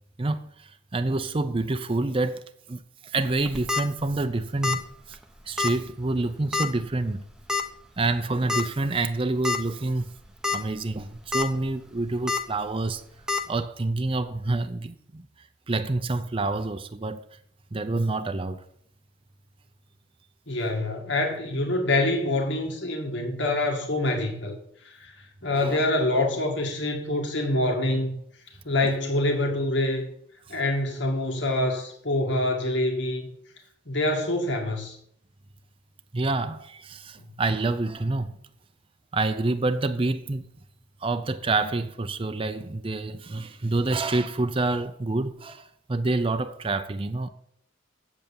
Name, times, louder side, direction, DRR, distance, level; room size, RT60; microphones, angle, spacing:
voice 1, 0.2-2.4 2.7-4.8 5.1-5.2 5.5-7.2 8.0-10.1 10.5-13.0 13.5-15.2 15.7-17.2 17.7-18.6 25.5-25.8 28.8-28.9 36.1-38.4 39.1-40.5 41.0-47.3, right 2 dB, 30° right, 0.6 m, -27 dB
sound 1, 3.4-3.8 4.6-4.9 5.1-5.2 5.6-5.7 6.5-6.8 7.5-7.6 8.5-8.6 9.1-9.2 9.4-9.6 10.2-10.6 11.0-11.4 12.3-12.4 13.3-13.4, left 4 dB, 5° right, 0.8 m, -26 dB
voice 2, 20.5-24.6 24.8-25.1 25.4-28.1 28.6-30.1 30.5-33.3 33.9-35.0, left 1 dB, 70° left, 2.1 m, -25 dB
8.0 x 8.0 x 7.1 m
head